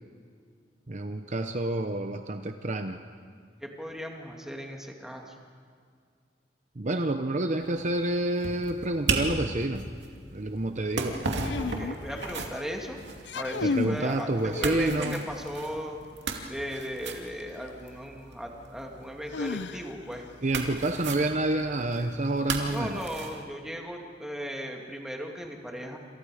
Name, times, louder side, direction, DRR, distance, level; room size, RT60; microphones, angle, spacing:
voice 1, 0.9-3.0 6.8-9.9 10.3-11.2 13.6-15.2 20.4-23.0, right 2 dB, 45° right, 7 dB, 0.9 m, -28 dB
voice 2, 3.6-5.3 11.6-13.0 13.3-16.0 16.5-20.3 22.6-26.0, equal, 5° right, 1 dB, 2.5 m, -37 dB
sound 1, 7.6-23.4, right 3 dB, 80° right, 2.6 m, -37 dB
sound 2, 11.4-12.6 13.2-14.1 14.5-15.4 17.4-17.5 19.3-20.2, left 4 dB, 80° left, 0.6 m, -33 dB
28.0 x 27.5 x 5.0 m, 2.1 s
head